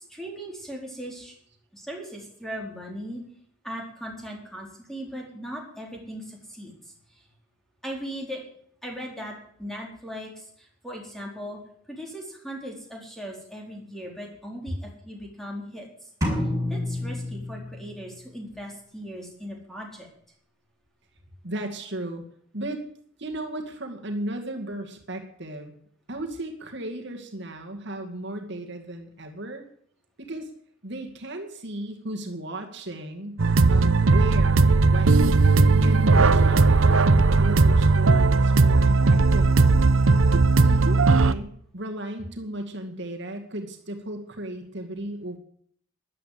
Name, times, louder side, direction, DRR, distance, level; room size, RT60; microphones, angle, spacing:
voice 1, 0.1-1.3 1.7-3.2 3.6-7.3 7.8-8.4 8.8-11.6 11.9-16.1 16.4-20.1, equal, ahead, -1 dB, 4.2 m, -38 dB
sound 1, 16.2-18.1, left 1 dB, 15° right, 5.3 m, -29 dB
voice 2, 21.4-22.2 22.5-22.8 23.2-25.7 26.1-29.6 30.2-30.5 30.8-33.4 33.7-35.3 35.8-39.8 40.3-45.4, right 1 dB, 60° right, 3 dB, 2.1 m, -35 dB
sound 2, 33.4-41.3, right 3 dB, 75° right, 0.8 m, -18 dB
13.5 x 11.0 x 8.6 m, 0.65 s
head